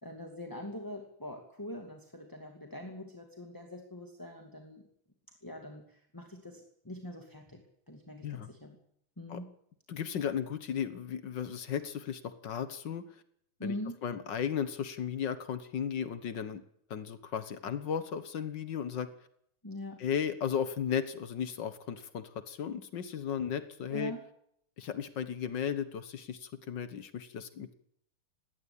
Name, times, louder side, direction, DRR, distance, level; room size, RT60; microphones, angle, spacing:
voice 1, 0.0-4.9 5.4-8.8 9.2-9.5 13.6-13.9 19.6-20.0 23.9-24.2, left 1 dB, 5° left, 3 dB, 2.0 m, -43 dB
voice 2, 9.9-13.1 13.6-13.7 14.0-16.6 16.9-19.1 20.0-24.1 24.8-27.7, left 8 dB, 55° left, 11 dB, 1.3 m, -35 dB
19.5 x 18.0 x 8.7 m, 0.72 s
omnidirectional pair, 3.4 m